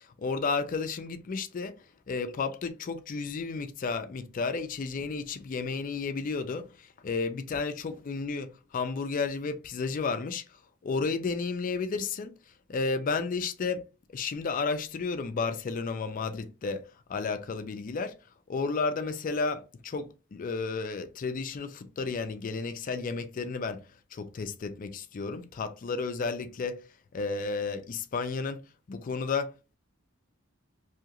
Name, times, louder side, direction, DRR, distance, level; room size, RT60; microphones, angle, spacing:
voice 1, 0.2-1.7 2.1-6.6 7.0-8.5 8.7-10.4 10.8-12.3 12.7-13.8 14.1-16.8 17.1-18.1 18.5-23.8 24.1-26.8 27.1-28.6 28.9-29.5, left 4 dB, 40° left, 0.3 m, -32 dB
2.7 x 2.4 x 2.8 m
head